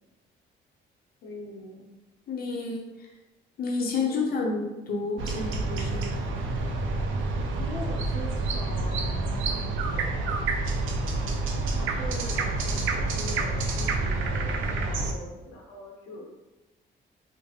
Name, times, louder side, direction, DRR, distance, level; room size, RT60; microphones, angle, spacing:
voice 1, 1.2-1.9 3.9-4.1 7.6-10.4 11.8-16.2, left 1 dB, 85° left, -4 dB, 0.7 m, -42 dB
voice 2, 2.3-2.8 3.6-6.3, left 4 dB, 50° left, -2 dB, 0.7 m, -30 dB
sound 1, 5.2-15.1, right 3 dB, 80° right, 0.4 m, -28 dB
3.0 x 2.1 x 3.0 m, 1.1 s
cardioid pair, 90°, 20 cm